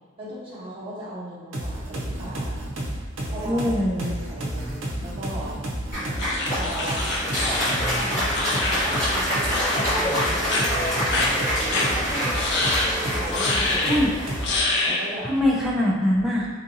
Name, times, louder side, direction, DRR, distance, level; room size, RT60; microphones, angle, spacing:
voice 1, 0.2-2.6 3.3-3.6 4.0-5.6 6.5-7.1 7.4-12.5 13.0-14.1 14.8-15.3, equal, 25° right, -12 dB, 1.0 m, -38 dB
sound 1, 1.5-14.7, right 1 dB, 70° right, 0.6 m, -31 dB
voice 2, 3.4-4.1 13.9-14.1 15.2-16.5, left 1 dB, ahead, -6 dB, 0.4 m, -22 dB
Applause, 5.9-15.3, equal, 35° left, 1.4 m, -27 dB
sound 2, 6.2-9.2 9.5-9.8 10.1-10.6 11.1-11.3 11.7-11.9 12.3-12.9 13.3-14.0 14.4-15.0, left 3 dB, 55° left, 0.4 m, -26 dB
3.5 x 2.6 x 2.7 m, 1.6 s
head